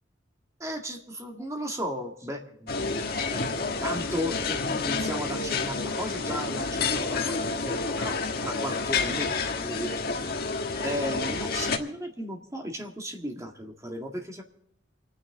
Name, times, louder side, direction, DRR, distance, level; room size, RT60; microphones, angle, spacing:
voice 1, 0.6-10.4 10.8-14.4, equal, 15° right, 2 dB, 2.0 m, -35 dB
sound 1, 2.7-11.8, left 4 dB, 50° left, 1.4 m, -29 dB
29.0 x 9.8 x 3.7 m, 0.77 s
head